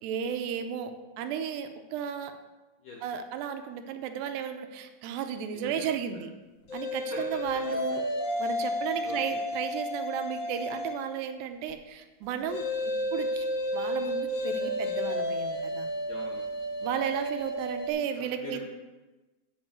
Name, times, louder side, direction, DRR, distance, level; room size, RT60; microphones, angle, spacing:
voice 1, 0.0-0.9 1.2-2.3 3.0-6.3 6.7-8.0 8.4-12.7 13.1-13.5 13.7-15.9 16.8-18.6, right 8 dB, 85° right, 7 dB, 2.8 m, -34 dB
voice 2, 5.5-6.2 7.1-7.4 9.0-9.4 16.1-16.5 18.1-18.6, left 4 dB, 65° left, -2 dB, 1.6 m, -43 dB
sound 1, 6.7-11.1 12.5-17.9, left 1 dB, 85° left, 1.0 m, -32 dB
8.9 x 5.2 x 7.8 m, 1.1 s
omnidirectional pair, 4.8 m